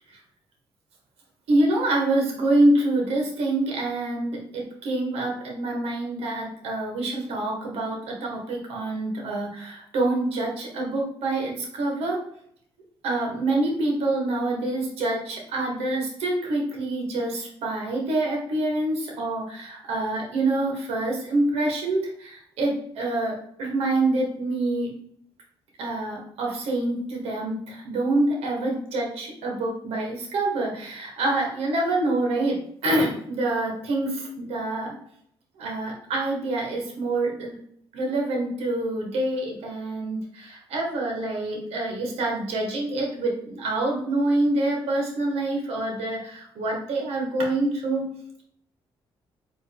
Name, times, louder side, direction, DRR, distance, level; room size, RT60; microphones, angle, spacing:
voice 1, 1.5-12.2 13.0-24.9 25.8-35.0 35.6-37.6 37.9-48.1, right 2 dB, 85° right, -1 dB, 1.4 m, -26 dB
4.5 x 2.9 x 3.5 m, 0.67 s
cardioid pair, 80°, 10 cm